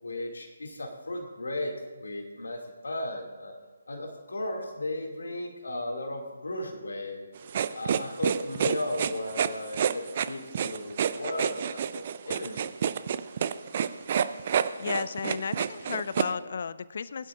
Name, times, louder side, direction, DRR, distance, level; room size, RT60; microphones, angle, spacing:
voice 1, 0.0-3.6 3.9-7.2 7.7-12.6, left 1 dB, 70° left, 2 dB, 2.2 m, -35 dB
sound 1, 7.5-16.3, right 8 dB, 40° right, 0.5 m, -28 dB
voice 2, 14.8-17.3, left 6 dB, 50° left, 17 dB, 0.4 m, -33 dB
21.0 x 11.5 x 2.5 m, 1.3 s
figure-of-eight pair, 145°, 0 cm